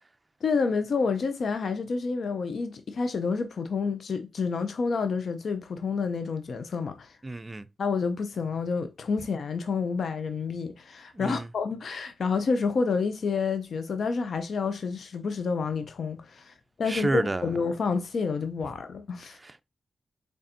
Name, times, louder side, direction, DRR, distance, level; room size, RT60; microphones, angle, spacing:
voice 1, 0.4-7.2 7.8-19.4, left 5 dB, 70° left, 0.4 m, -29 dB
voice 2, 7.2-7.7 11.1-11.5 16.9-17.5 19.4-19.6, right 2 dB, 25° right, 0.4 m, -30 dB
4.1 x 3.4 x 2.5 m
cardioid pair, 80°, 0 cm